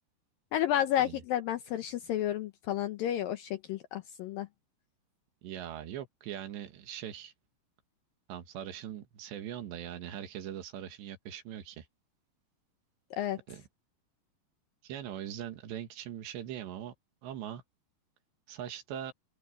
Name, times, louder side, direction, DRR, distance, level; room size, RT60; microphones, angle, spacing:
voice 1, 0.5-4.5 13.1-13.4, left 12 dB, 75° left, 2.2 m, -31 dB
voice 2, 5.4-7.3 8.3-11.9 13.5-13.6 14.8-16.9 17.2-17.6 18.5-19.1, right 10 dB, 85° right, 4.0 m, -41 dB
open air
omnidirectional pair, 4.9 m